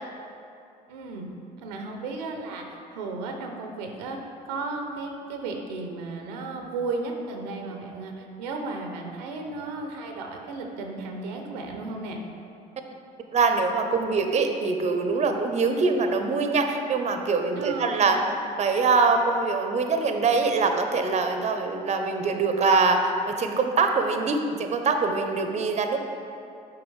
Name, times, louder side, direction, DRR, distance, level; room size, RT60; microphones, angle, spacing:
voice 1, 0.9-1.3 1.6-4.2 4.4-12.2 17.5-18.4, right 3 dB, 90° right, 3 dB, 0.6 m, -34 dB
voice 2, 13.3-18.2 18.6-26.0, right 4 dB, 35° right, 5 dB, 0.6 m, -23 dB
7.0 x 4.8 x 3.2 m, 2.7 s
hypercardioid pair, 60°, 20 cm